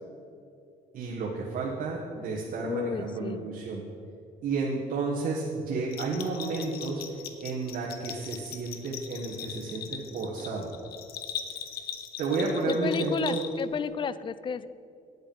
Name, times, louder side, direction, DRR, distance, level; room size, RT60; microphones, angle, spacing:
voice 1, 0.9-3.8 4.4-7.0 7.4-10.7 12.2-13.4, right 4 dB, 55° right, -3 dB, 1.3 m, -31 dB
voice 2, 2.6-3.5 12.7-14.7, left 7 dB, 30° left, 16 dB, 0.3 m, -32 dB
Bell, 5.9-13.8, left 8 dB, 65° left, 0.9 m, -40 dB
9.2 x 8.0 x 5.4 m, 2.6 s
cardioid pair, 110°, 17 cm